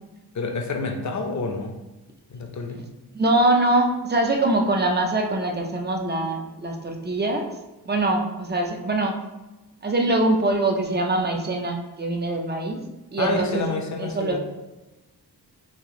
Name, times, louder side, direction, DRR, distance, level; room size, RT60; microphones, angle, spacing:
voice 1, 0.3-1.7 2.3-2.8 13.2-14.4, left 3 dB, 45° left, 4 dB, 0.5 m, -28 dB
voice 2, 3.1-7.5 7.9-9.2 9.8-12.8 13.1-13.7 14.0-14.4, right 2 dB, 25° right, 3 dB, 0.4 m, -23 dB
3.3 x 2.6 x 3.6 m, 1.1 s
wide cardioid pair, 145°, 39 cm